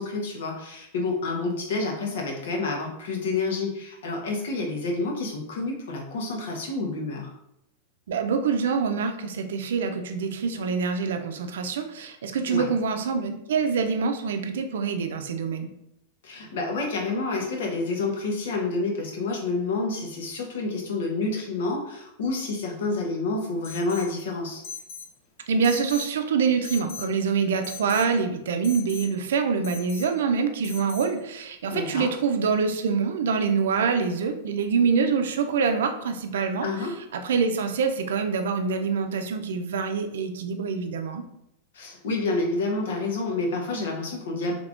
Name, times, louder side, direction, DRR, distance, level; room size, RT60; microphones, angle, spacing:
voice 1, 0.0-7.3 12.5-12.7 16.2-24.6 31.7-32.1 36.6-37.0 41.7-44.6, left 3 dB, 80° left, 0 dB, 0.9 m, -29 dB
voice 2, 8.1-15.7 25.5-36.7 37.1-41.2, right 5 dB, 90° right, 6 dB, 0.5 m, -25 dB
Alarm, 23.6-24.1 24.6-25.1 25.6-26.1 26.6-27.1 27.6-28.1 28.6-29.1 29.6-30.1 30.6-31.1, left 5 dB, 45° left, 0.7 m, -40 dB
3.5 x 3.3 x 2.5 m, 0.81 s
supercardioid pair, 160°, 0 cm